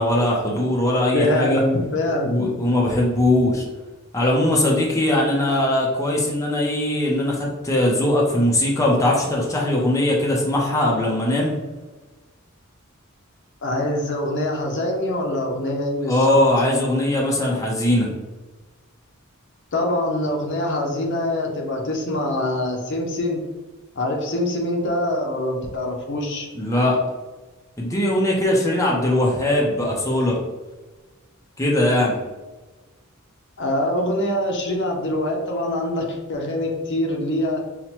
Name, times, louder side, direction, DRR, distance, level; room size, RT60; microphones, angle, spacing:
voice 1, 0.0-1.6 2.2-3.6 4.1-11.6 16.0-18.1 26.6-27.0 27.8-30.4 31.6-32.2, left 1 dB, 15° left, -2 dB, 0.6 m, -20 dB
voice 2, 1.1-2.8 13.6-16.4 19.7-23.4 24.0-26.5 33.6-37.7, left 1 dB, 60° left, 1 dB, 0.7 m, -24 dB
5.7 x 2.1 x 2.9 m, 1.2 s
head